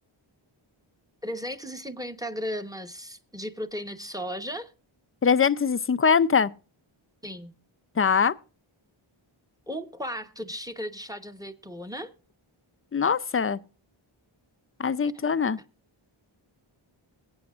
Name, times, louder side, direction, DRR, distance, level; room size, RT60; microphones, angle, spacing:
voice 1, 1.2-4.7 7.2-7.5 9.7-12.1 15.1-15.2, equal, 5° right, 1.0 m, -35 dB
voice 2, 5.2-6.5 8.0-8.3 12.9-13.6 14.8-15.6, left 6 dB, 30° left, 0.5 m, -22 dB
22.5 x 8.5 x 2.4 m
wide cardioid pair, 45°, 50 cm